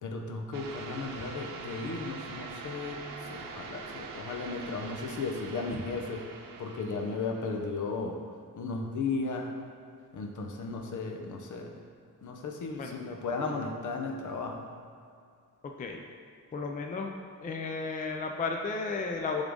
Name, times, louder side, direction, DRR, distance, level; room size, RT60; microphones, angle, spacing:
voice 1, 0.0-6.3 6.6-8.2 8.6-9.6 10.1-11.8 12.2-14.7, left 3 dB, 65° left, 2 dB, 0.9 m, -35 dB
sound 1, 0.5-7.8, right 4 dB, 90° right, 0.8 m, -43 dB
voice 2, 15.6-16.0 16.5-17.1 17.4-19.4, left 4 dB, 25° left, 2 dB, 0.4 m, -33 dB
10.5 x 3.7 x 3.7 m, 2.4 s
wide cardioid pair, 175°, 33 cm